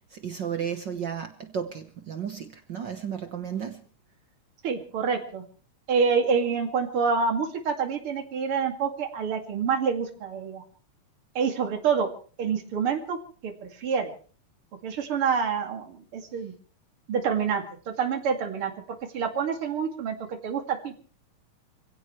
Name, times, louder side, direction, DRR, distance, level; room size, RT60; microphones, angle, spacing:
voice 1, 0.0-3.8, right 8 dB, 70° right, 1.0 m, -33 dB
voice 2, 4.6-5.4 5.9-10.6 11.3-12.1 12.4-13.2 13.4-14.1 14.8-16.5 17.1-18.7 19.1-21.0, right 6 dB, 45° right, 3.0 m, -27 dB
26.5 x 16.5 x 3.2 m
omnidirectional pair, 3.6 m